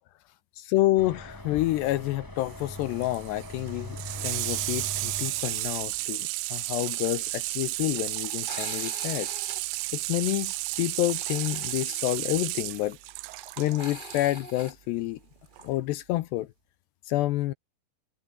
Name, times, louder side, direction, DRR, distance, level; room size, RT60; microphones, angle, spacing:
voice 1, 0.6-9.3 9.9-13.0 13.6-15.2 15.6-16.5 17.1-17.5, left 16 dB, 75° left, 2.9 m, -28 dB
sound 1, 1.0-6.1, left 1 dB, 10° left, 1.0 m, -41 dB
sound 2, 1.8-2.1 2.4-2.5 3.7-3.9 6.9-15.7, right 1 dB, 10° right, 7.7 m, -45 dB
Water tap faucet / Sink (filling or washing), 2.4-14.3 15.6-15.7, right 22 dB, 85° right, 3.0 m, -33 dB
omnidirectional pair, 5.1 m